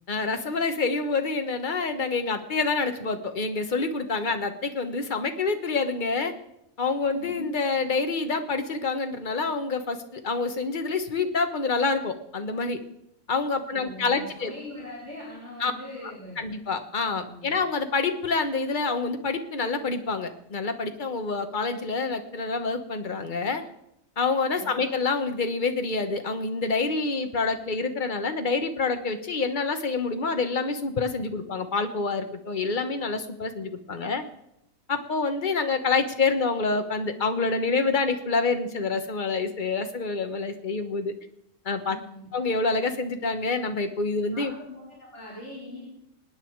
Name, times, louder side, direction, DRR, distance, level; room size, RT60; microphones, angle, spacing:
voice 1, 0.1-6.3 6.8-12.8 13.3-14.5 15.6-15.7 16.4-23.6 24.2-34.2 34.9-41.1 41.6-42.0 42.3-44.5, left 4 dB, 35° left, 7 dB, 1.3 m, -27 dB
voice 2, 7.1-7.5 13.7-16.4 17.0-17.5 24.4-24.8 41.8-42.3 44.3-45.9, left 1 dB, 50° left, -7 dB, 5.6 m, -42 dB
26.5 x 9.3 x 4.6 m, 0.83 s
omnidirectional pair, 1.5 m